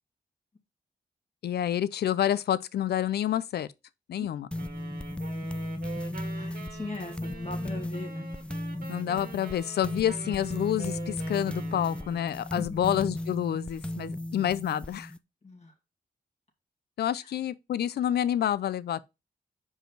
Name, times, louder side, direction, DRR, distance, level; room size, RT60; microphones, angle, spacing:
voice 1, 1.4-3.7 4.1-4.5 8.9-15.1 17.0-19.1, left 10 dB, 85° left, 0.4 m, -28 dB
sound 1, 4.5-15.2, left 1 dB, 5° left, 0.5 m, -36 dB
sound 2, 4.6-12.5, right 5 dB, 65° right, 1.6 m, -45 dB
voice 2, 6.3-8.3 12.6-12.9 15.4-15.7 17.1-17.3, left 3 dB, 40° left, 2.4 m, -39 dB
5.3 x 4.8 x 4.5 m
cardioid pair, 60°, 16 cm